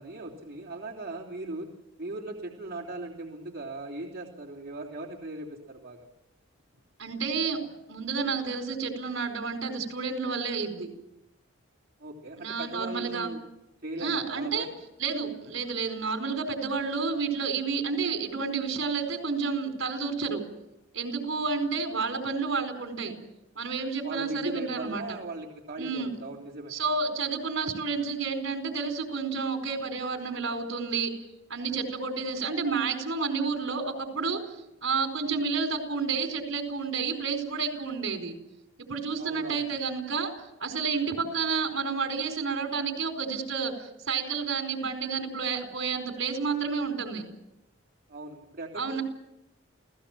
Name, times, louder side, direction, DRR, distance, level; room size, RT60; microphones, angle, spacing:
voice 1, 0.0-1.7 2.0-6.1 12.0-13.4 13.8-14.8 24.0-26.7 39.2-39.6 48.1-49.0, right 2 dB, 45° right, -3 dB, 3.4 m, -38 dB
voice 2, 7.0-7.6 7.9-10.9 12.4-13.3 14.0-14.7 15.0-20.4 20.9-23.1 23.5-25.0 25.8-26.1 26.7-31.1 31.5-34.5 34.8-38.3 38.8-40.3 40.6-47.3 48.8-49.0, right 5 dB, 70° right, 6 dB, 4.5 m, -30 dB
29.0 x 17.5 x 7.5 m, 0.91 s
head